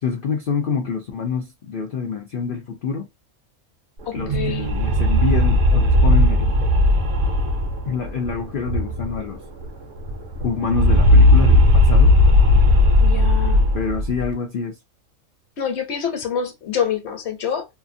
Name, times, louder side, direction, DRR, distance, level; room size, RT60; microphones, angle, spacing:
voice 1, 0.0-3.1 4.1-6.6 7.9-9.4 10.4-12.2 13.7-14.8, left 6 dB, 90° left, 0.4 m, -26 dB
sound 1, 4.0-9.3 9.6-9.7 10.0-14.3, left 1 dB, 65° right, 1.1 m, -16 dB
voice 2, 4.1-4.7 13.0-13.7 15.6-17.7, left 7 dB, 55° left, 1.0 m, -26 dB
2.8 x 2.4 x 2.5 m
omnidirectional pair, 1.5 m